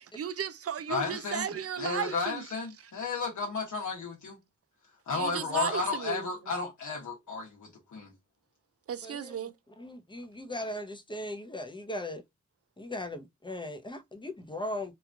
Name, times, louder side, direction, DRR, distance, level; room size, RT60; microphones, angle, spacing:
voice 1, 0.0-2.5 5.1-6.3 8.9-9.5, right 8 dB, 55° right, 0.5 m, -35 dB
voice 2, 0.9-1.5 1.8-4.4 5.1-8.1, left 4 dB, 80° left, 0.9 m, -33 dB
voice 3, 9.0-9.3 9.8-12.2 12.8-14.9, left 1 dB, 15° left, 0.7 m, -38 dB
3.1 x 2.4 x 2.3 m
cardioid pair, 50°, 29 cm